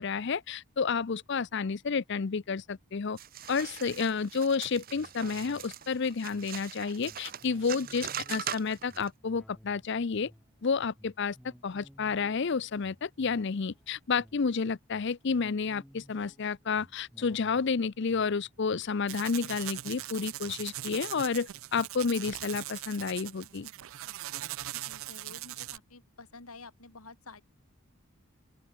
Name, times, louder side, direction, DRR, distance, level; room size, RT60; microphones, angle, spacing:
voice 1, 0.0-3.2 3.5-10.3 10.6-11.4 11.6-23.7, left 5 dB, 50° left, 0.5 m, -30 dB
sound 1, 3.2-9.1, right 9 dB, 40° right, 1.0 m, -41 dB
sound 2, 4.9-20.7 21.1-21.2, equal, 5° left, 3.2 m, -58 dB
sound 3, 19.1-25.8, right 14 dB, 65° right, 0.5 m, -40 dB
voice 2, 24.7-27.4, left 3 dB, 80° left, 3.3 m, -50 dB
open air
head